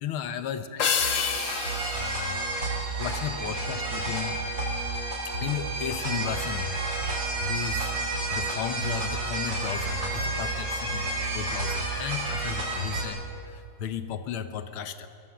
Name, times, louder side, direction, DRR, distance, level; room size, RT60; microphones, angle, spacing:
voice 1, 0.0-1.1 1.9-2.4 3.0-4.4 5.4-11.1 11.3-13.2 13.5-15.1, left 8 dB, 90° left, 10 dB, 1.9 m, -34 dB
sound 1, 0.8-3.4, left 7 dB, 50° left, 1.2 m, -30 dB
sound 2, 1.0-13.0, right 2 dB, 65° right, 5.8 m, -30 dB
23.0 x 18.5 x 7.5 m, 2.6 s
omnidirectional pair, 2.3 m